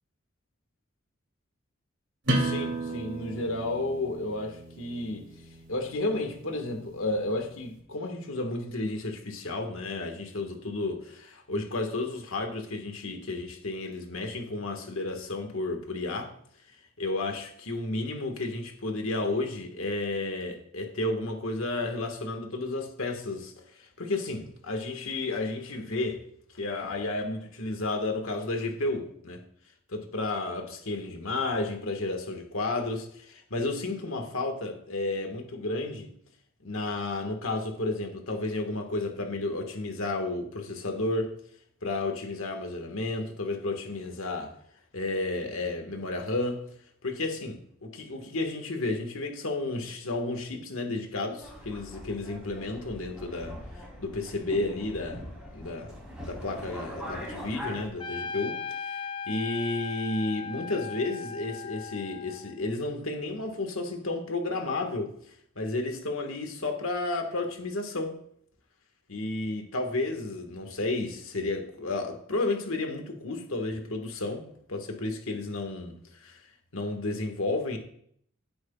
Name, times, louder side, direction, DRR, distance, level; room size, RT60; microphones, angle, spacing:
sound 1, 2.2-7.6, right 1 dB, 60° right, 2.8 m, -34 dB
voice 1, 2.3-5.3 5.7-16.3 17.0-26.2 26.5-29.4 29.9-36.1 36.6-41.3 41.8-44.5 44.9-46.6 47.0-53.6 54.0-56.0 56.3-59.0 59.3-65.1 65.5-68.2 69.1-76.4 76.7-77.8, left 2 dB, 80° left, 1.6 m, -32 dB
Subway metro underground, 51.4-57.9, left 1 dB, 5° right, 3.0 m, -42 dB
Trumpet, 58.0-62.7, left 5 dB, 25° left, 0.5 m, -38 dB
15.5 x 7.9 x 2.4 m
head